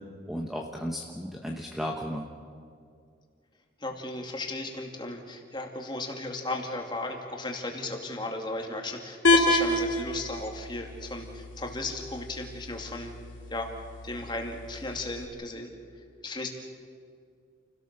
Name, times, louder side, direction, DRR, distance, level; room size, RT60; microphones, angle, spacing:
voice 1, 0.3-2.3, equal, ahead, 0 dB, 1.1 m, -34 dB
voice 2, 3.8-13.1 13.5-13.7 14.0-15.7 16.2-16.5, left 2 dB, 25° left, 2 dB, 2.3 m, -35 dB
sound 1, 9.2-15.2, left 2 dB, 80° left, 2.5 m, -29 dB
28.5 x 17.5 x 6.7 m, 2.2 s
head